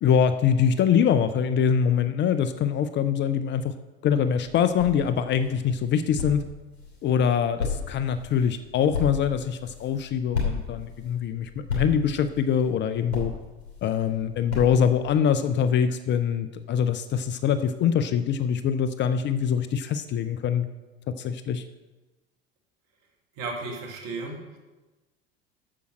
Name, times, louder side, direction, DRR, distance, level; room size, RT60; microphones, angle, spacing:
voice 1, 0.0-3.7 4.0-6.4 7.0-13.3 13.8-20.7 21.1-21.6, left 7 dB, 35° left, 11 dB, 0.6 m, -24 dB
sound 1, 4.3-15.2, left 5 dB, 70° left, 3.1 m, -35 dB
voice 2, 23.4-24.6, right 3 dB, 60° right, 1 dB, 2.1 m, -34 dB
8.6 x 7.0 x 6.3 m, 1.1 s
figure-of-eight pair, 70°, 32 cm